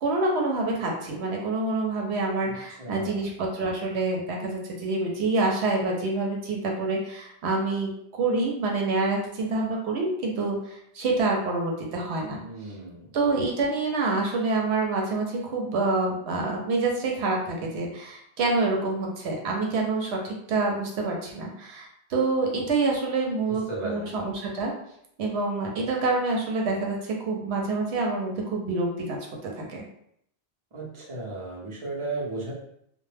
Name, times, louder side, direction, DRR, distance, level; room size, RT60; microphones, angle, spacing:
voice 1, 0.0-12.4 13.1-24.7 25.2-29.2 29.6-29.8, right 3 dB, 80° right, 0 dB, 0.9 m, -27 dB
voice 2, 2.8-3.2 12.4-13.0 23.7-24.1 30.7-32.5, right 2 dB, 35° right, -5 dB, 0.7 m, -34 dB
2.1 x 2.1 x 3.2 m, 0.72 s
omnidirectional pair, 1.1 m